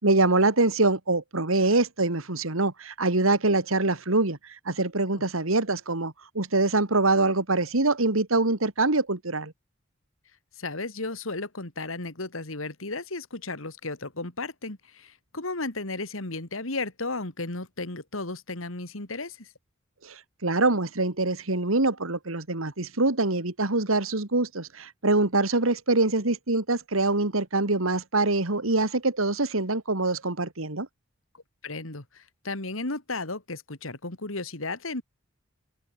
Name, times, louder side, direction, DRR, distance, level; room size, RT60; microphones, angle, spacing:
voice 1, 0.0-9.5 20.0-30.9, right 2 dB, 85° right, 2.4 m, -24 dB
voice 2, 10.6-19.5 31.6-35.0, left 3 dB, 75° left, 2.9 m, -34 dB
open air
head